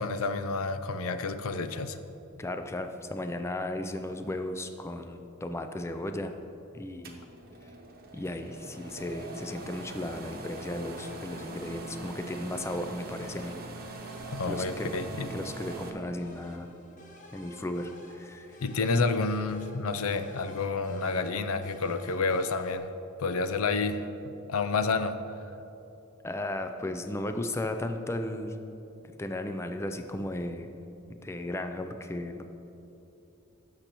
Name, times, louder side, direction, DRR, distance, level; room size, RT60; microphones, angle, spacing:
voice 1, 0.0-2.0 14.3-15.3 18.6-22.9 23.2-25.2, left 4 dB, 80° left, 10 dB, 0.5 m, -29 dB
voice 2, 2.4-6.3 6.7-7.2 8.1-13.6 14.5-14.9 15.3-16.7 17.3-18.6 26.2-28.5 29.2-30.7 31.2-32.5, left 1 dB, 15° left, 7 dB, 0.4 m, -35 dB
sound 1, 7.0-15.9, right 3 dB, 45° right, 1.0 m, -43 dB
sound 2, 10.8-22.8, left 1 dB, 35° left, 1.1 m, -52 dB
16.0 x 6.6 x 3.0 m, 3.0 s
head